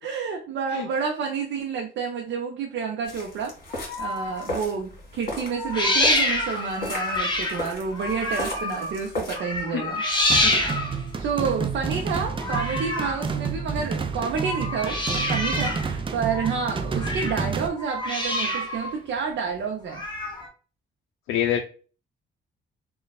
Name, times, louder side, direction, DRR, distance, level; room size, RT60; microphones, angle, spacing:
voice 1, 0.0-10.5 11.2-20.0, right 5 dB, 70° right, 1 dB, 0.7 m, -29 dB
sound 1, 3.0-9.4, left 1 dB, 50° left, 1.8 m, -35 dB
sound 2, 3.7-4.5 5.5-9.0 9.3-11.1 12.3-13.3 14.3-15.9 16.2-17.5 17.8-18.9 19.9-20.5, left 1 dB, 25° left, 1.1 m, -27 dB
sound 3, 10.3-17.7, right 5 dB, 25° right, 0.5 m, -30 dB
voice 2, 21.3-21.6, left 10 dB, 85° left, 5 dB, 0.4 m, -24 dB
3.1 x 2.3 x 4.0 m, 0.38 s
cardioid pair, 90°, 20 cm